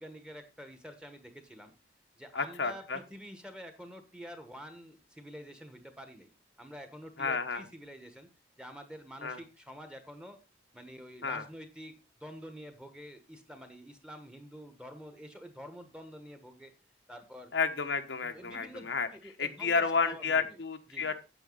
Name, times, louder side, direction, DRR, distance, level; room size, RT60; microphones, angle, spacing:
voice 1, 0.0-1.7 2.2-6.3 6.6-8.3 8.6-10.4 10.7-11.9 12.2-16.7 17.1-17.5 18.2-20.6 20.9-21.1, equal, 5° right, 8 dB, 1.3 m, -48 dB
voice 2, 2.3-3.0 7.2-7.6 9.2-9.4 11.2-11.4 17.5-19.1 19.4-21.1, left 5 dB, 90° left, 6 dB, 1.2 m, -31 dB
9.1 x 8.4 x 3.9 m, 0.29 s
head